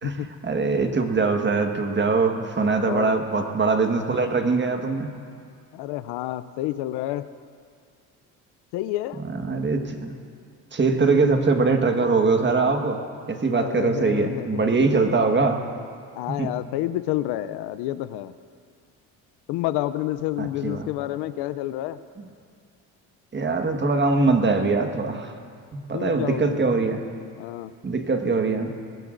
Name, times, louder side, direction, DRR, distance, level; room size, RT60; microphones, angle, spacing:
voice 1, 0.0-5.1 9.3-10.1 10.7-13.0 13.3-15.6 16.4-16.5 20.4-20.9 22.2-22.3 23.3-25.3 25.7-27.0 27.8-28.7, right 4 dB, 25° right, 5 dB, 1.5 m, -22 dB
voice 2, 2.8-3.3 5.7-7.3 8.7-9.2 10.9-11.3 13.5-14.9 16.1-18.3 19.5-22.0 25.9-26.8 27.4-27.7, left 14 dB, 75° left, 13 dB, 0.6 m, -29 dB
20.0 x 16.0 x 2.6 m, 2.2 s
supercardioid pair, 80°, 39 cm